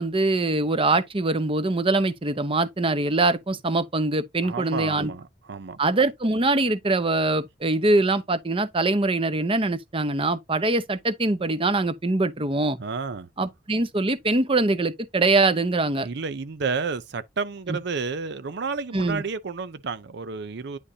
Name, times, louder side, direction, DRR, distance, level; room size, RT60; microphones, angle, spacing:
voice 1, 0.0-5.1 5.8-12.8 13.4-16.1 17.7-17.8 18.9-19.2, right 2 dB, 30° right, 0.9 m, -23 dB
voice 2, 4.4-5.8 12.8-13.3 16.0-20.8, right 4 dB, 65° right, 0.6 m, -31 dB
9.9 x 5.2 x 2.8 m
head